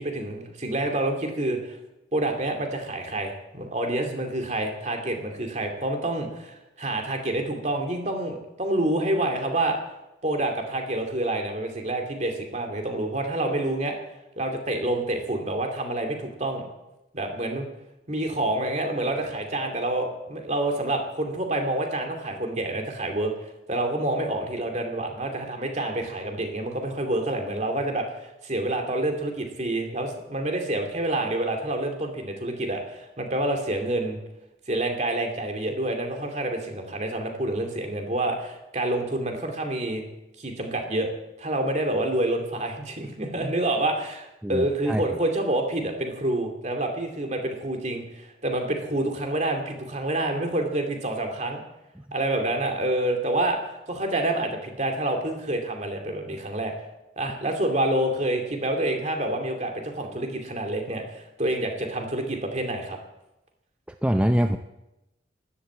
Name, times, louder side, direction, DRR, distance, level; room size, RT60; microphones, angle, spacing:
voice 1, 0.0-1.8 2.1-9.8 10.2-13.9 14.4-16.6 17.1-17.7 18.1-34.2 34.7-40.0 40.4-41.1 41.4-51.6 52.1-56.7 57.2-63.0, right 1 dB, 40° right, 3 dB, 2.5 m, -28 dB
voice 2, 44.4-45.0 64.0-64.6, equal, 5° right, 6 dB, 0.5 m, -23 dB
12.5 x 11.5 x 8.7 m, 0.93 s
head